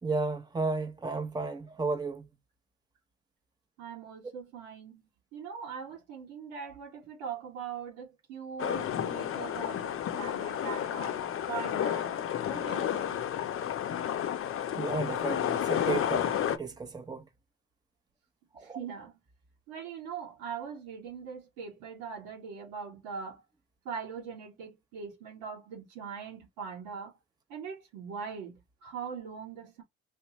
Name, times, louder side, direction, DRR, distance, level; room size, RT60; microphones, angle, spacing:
voice 1, 0.0-2.3 14.8-17.3 18.5-18.8, right 3 dB, 15° right, 0.9 m, -33 dB
voice 2, 3.8-5.0 5.3-11.2 11.5-12.1 12.5-13.2 18.6-19.1 19.7-23.4 23.9-27.1 27.5-29.8, right 6 dB, 80° right, 1.8 m, -41 dB
sound 1, 8.6-16.6, left 10 dB, 45° left, 0.7 m, -31 dB
3.4 x 3.0 x 3.0 m
supercardioid pair, 65°, 30 cm